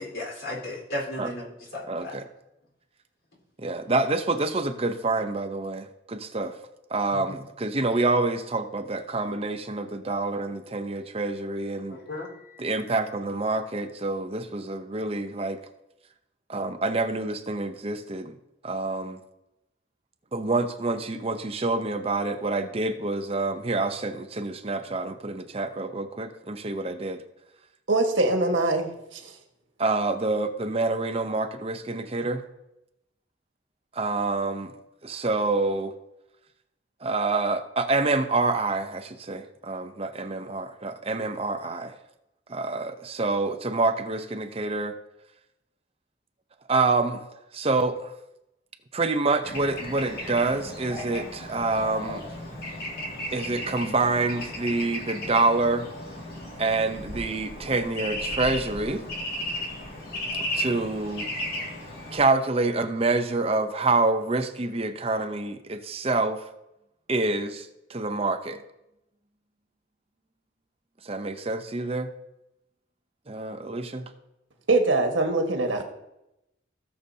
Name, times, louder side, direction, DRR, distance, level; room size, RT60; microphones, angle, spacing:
voice 1, 0.0-1.5 1.7-2.1 7.1-7.4 11.9-12.7, left 1 dB, 85° left, -3 dB, 4.1 m, -35 dB
voice 2, 1.9-2.2 3.6-6.5 6.9-12.0 12.6-15.6 16.5-18.4 18.6-19.2 20.3-27.2 29.8-32.4 34.0-34.7 35.0-35.9 37.0-42.0 42.5-44.9 46.7-47.3 47.5-48.1 48.9-52.2 53.3-55.9 56.6-59.0 60.5-61.2 62.1-66.4 67.1-68.6 71.0-72.1 73.3-74.1, right 3 dB, 30° right, 7 dB, 0.7 m, -27 dB
voice 3, 27.9-29.3 74.7-75.8, right 2 dB, 85° right, 3 dB, 1.5 m, -23 dB
Bird / Traffic noise roadway noise, 49.4-62.2, left 1 dB, 55° left, 2.2 m, -35 dB
17.5 x 6.8 x 2.8 m, 0.88 s
head